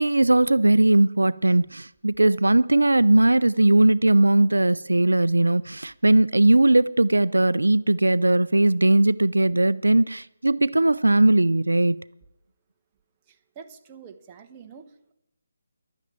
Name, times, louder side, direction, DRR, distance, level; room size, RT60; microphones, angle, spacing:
voice 1, 0.0-12.1, right 2 dB, 90° right, 0.4 m, -19 dB
voice 2, 13.3-15.1, right 6 dB, 20° right, 1.1 m, -46 dB
11.5 x 9.0 x 8.6 m
figure-of-eight pair, 155°, 0 cm